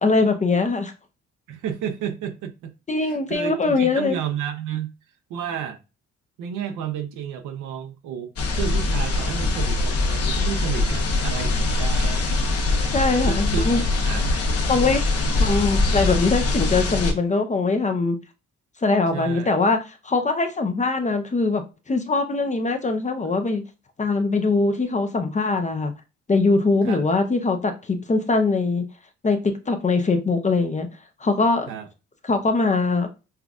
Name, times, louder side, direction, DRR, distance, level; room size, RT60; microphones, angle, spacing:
voice 1, 0.0-0.9 2.9-4.2 12.9-13.8 14.7-15.1 15.4-18.2 18.8-23.6 24.0-25.9 26.3-28.9 29.2-30.9 31.2-31.7 32.2-33.1, left 3 dB, 25° left, 0.6 m, -22 dB
voice 2, 1.5-4.9 5.3-5.8 6.4-8.3 8.6-12.2 13.2-14.7 19.1-19.5 26.8-27.0 31.7-31.9, right 8 dB, 85° right, 0.7 m, -31 dB
sound 1, 8.4-17.1, left 2 dB, 50° left, 1.0 m, -22 dB
5.6 x 2.4 x 2.4 m
cardioid pair, 90°, 30 cm